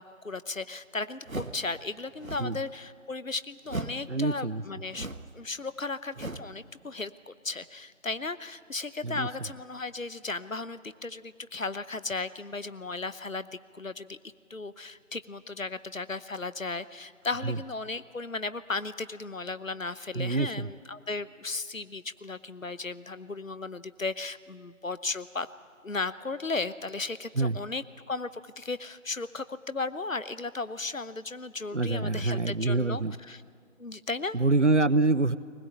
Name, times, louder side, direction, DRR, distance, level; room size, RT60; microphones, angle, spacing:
voice 1, 0.0-5.1 5.3-13.5 13.7-14.2 14.5-25.5 25.8-33.4 33.8-34.4, left 3 dB, 70° left, 15 dB, 0.9 m, -35 dB
sound 1, 1.3-1.7 2.1-2.6 3.7-4.1 4.9-5.4 6.2-6.6, right 3 dB, 75° right, 1.4 m, -37 dB
voice 2, 4.1-4.6 9.0-9.3 17.4-17.6 20.1-20.7 27.3-27.6 31.7-33.1 34.3-35.4, right 3 dB, 60° right, 17 dB, 0.7 m, -26 dB
20.5 x 20.0 x 8.8 m, 2.2 s
figure-of-eight pair, 180°, 41 cm